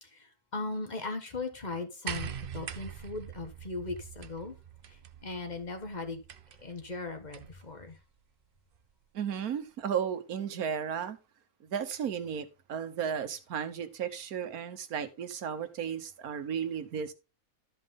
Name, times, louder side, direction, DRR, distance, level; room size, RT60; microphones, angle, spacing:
voice 1, 0.0-4.5 4.9-6.2 6.6-8.0, left 3 dB, 30° left, 1.5 m, -38 dB
sound 1, 2.1-7.7 8.7-8.8, right 8 dB, 50° right, 0.7 m, -43 dB
voice 2, 9.1-11.2 11.6-17.1, right 8 dB, 75° right, 1.5 m, -34 dB
13.0 x 5.3 x 3.7 m
omnidirectional pair, 1.6 m